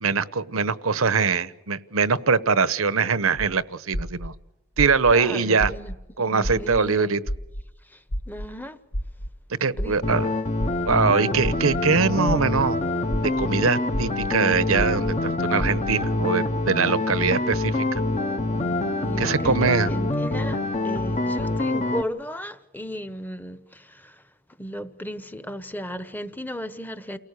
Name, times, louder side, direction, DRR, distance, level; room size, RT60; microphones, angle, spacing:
voice 1, 0.0-4.3 4.8-5.7 6.2-7.2 9.6-10.3 10.8-12.8 13.2-18.0 19.2-19.9, right 5 dB, 70° right, 1.0 m, -22 dB
sound 1, 3.4-3.5 3.9-4.3 4.8-5.1 5.6-6.0 6.4-6.8 7.3-7.6 8.1-8.5 8.9-9.3 9.8-10.1 10.6-11.0 11.4-11.8 12.3-12.6 13.1-13.5 13.9-14.3 14.8-15.1 15.6-15.9, equal, 75° left, 1.5 m, -29 dB
voice 2, 5.1-7.1 7.8-8.8 9.8-10.2 19.0-24.2 24.6-27.2, equal, 10° left, 1.1 m, -35 dB
sound 2, 10.0-22.0, left 2 dB, 30° left, 1.0 m, -25 dB
29.5 x 18.5 x 6.8 m
head